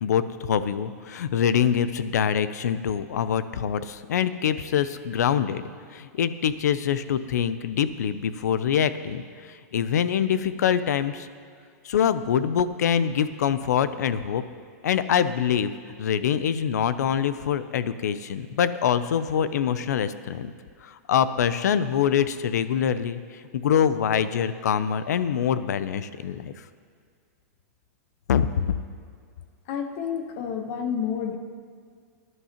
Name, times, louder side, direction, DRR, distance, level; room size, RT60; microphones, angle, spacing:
voice 1, 0.0-11.3 11.8-14.4 14.8-15.7 16.0-20.5 20.8-23.2 23.5-26.5 28.3-28.7, left 8 dB, 90° left, 13 dB, 0.6 m, -24 dB
voice 2, 29.7-31.4, left 7 dB, 40° left, 6 dB, 1.0 m, -29 dB
17.0 x 11.0 x 3.0 m, 2.1 s
supercardioid pair, 165°, 9 cm